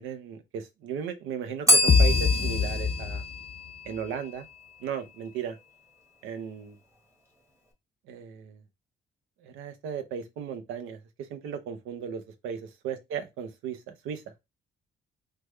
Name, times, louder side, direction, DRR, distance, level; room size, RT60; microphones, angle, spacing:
voice 1, 0.0-3.2 3.8-4.5 4.8-5.6 6.2-6.8 8.1-8.6 9.4-11.0 11.3-14.2, right 7 dB, 90° right, 0.6 m, -36 dB
Bell, 1.7-4.5, left 1 dB, 15° right, 1.0 m, -27 dB
sound 1, 1.9-3.7, left 5 dB, 30° left, 0.4 m, -23 dB
3.4 x 2.2 x 3.1 m
cardioid pair, 90°, 20 cm